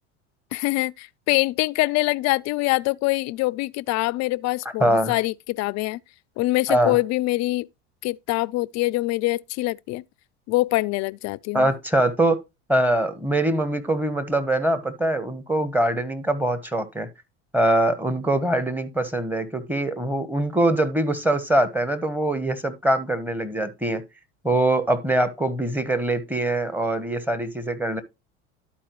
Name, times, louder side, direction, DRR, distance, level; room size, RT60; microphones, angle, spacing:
voice 1, 0.5-6.0 6.4-7.7 8.0-10.0 10.5-11.7, left 20 dB, 50° left, 0.4 m, -24 dB
voice 2, 4.8-5.2 6.7-7.0 11.5-12.4 12.7-17.1 17.5-24.0 24.4-28.0, right 1 dB, 5° right, 1.1 m, -23 dB
12.0 x 4.4 x 3.0 m
supercardioid pair, 85°, 34 cm